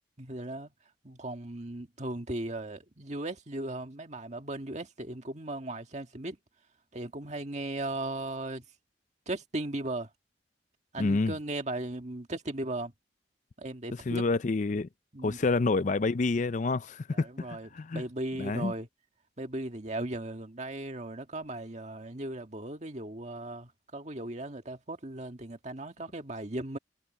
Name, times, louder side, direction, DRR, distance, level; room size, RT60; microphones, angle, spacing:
voice 1, 0.2-0.7 1.0-6.4 6.9-8.7 9.3-10.1 10.9-12.9 13.6-14.2 15.1-15.4 17.1-18.9 19.4-26.8, right 2 dB, 40° right, 1.8 m, -37 dB
voice 2, 11.0-11.3 13.9-14.9 15.2-18.0 18.4-18.7, left 3 dB, 45° left, 0.5 m, -28 dB
head